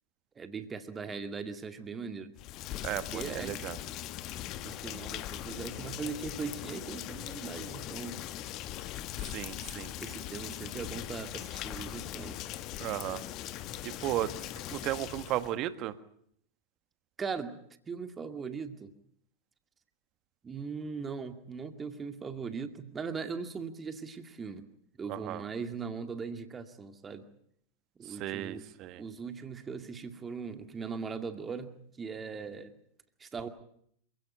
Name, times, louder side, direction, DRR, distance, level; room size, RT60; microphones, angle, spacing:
voice 1, 0.4-2.3 3.1-3.6 4.6-8.2 10.0-12.4 17.2-17.6 17.9-18.9 20.4-24.7 25.0-27.3 28.0-28.6 29.0-31.7 32.0-32.7 33.2-33.5, right 5 dB, 20° right, 8 dB, 2.2 m, -39 dB
Rain, 2.3-15.5, left 13 dB, 35° left, 1.3 m, -40 dB
voice 2, 2.8-3.8 9.2-9.9 12.8-13.2 13.8-14.3 14.7-15.9 25.1-25.4 28.1-29.0, right 13 dB, 35° right, 13 dB, 1.6 m, -35 dB
27.5 x 17.0 x 9.0 m, 0.68 s
figure-of-eight pair, 90°, 0 cm